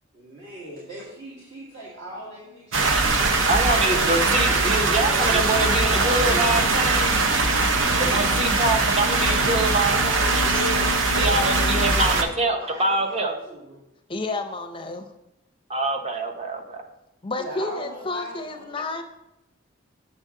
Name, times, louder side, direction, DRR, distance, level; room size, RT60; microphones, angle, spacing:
voice 1, 0.1-3.8 5.0-6.4 7.7-8.4 10.3-13.8 17.4-18.8, right 1 dB, 55° right, -7 dB, 1.6 m, -38 dB
sound 1, 2.5-11.9, left 7 dB, 85° left, 0.4 m, -38 dB
sound 2, 2.7-12.2, right 3 dB, 75° right, 0.7 m, -21 dB
voice 2, 3.5-7.2 8.0-10.4 11.1-13.3 15.7-16.8, right 2 dB, 30° right, 4 dB, 0.7 m, -25 dB
voice 3, 14.1-15.1 17.2-19.0, left 3 dB, 25° left, 5 dB, 0.5 m, -30 dB
6.8 x 6.2 x 3.6 m, 0.89 s
head